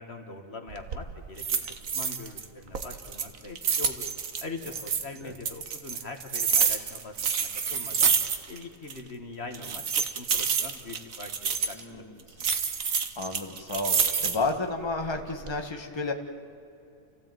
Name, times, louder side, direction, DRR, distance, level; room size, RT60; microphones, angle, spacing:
voice 1, 0.0-4.1 4.4-8.2 8.5-12.5, left 3 dB, 50° left, 5 dB, 1.9 m, -42 dB
sound 1, 0.7-1.0 1.4-2.4 2.7-5.0 5.4-8.6 8.9-9.0 9.5-11.8 12.4-14.5 15.0-15.5, right 6 dB, 75° right, 1.7 m, -28 dB
voice 2, 11.7-12.1 13.2-16.1, left 3 dB, 20° left, 3 dB, 1.7 m, -31 dB
29.5 x 15.5 x 9.1 m, 2.7 s
omnidirectional pair, 1.4 m